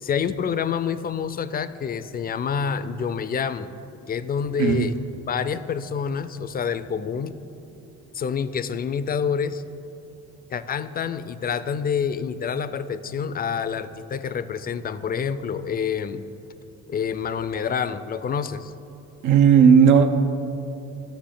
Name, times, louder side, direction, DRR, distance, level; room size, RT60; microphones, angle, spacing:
voice 1, 0.0-3.7 4.1-5.0 5.3-7.4 8.1-9.6 10.5-16.2 16.9-18.7, left 7 dB, 30° left, 13 dB, 0.4 m, -27 dB
voice 2, 19.2-20.1, right 7 dB, 85° right, 6 dB, 0.7 m, -14 dB
11.5 x 6.7 x 3.8 m, 2.8 s
cardioid pair, 90°, 30 cm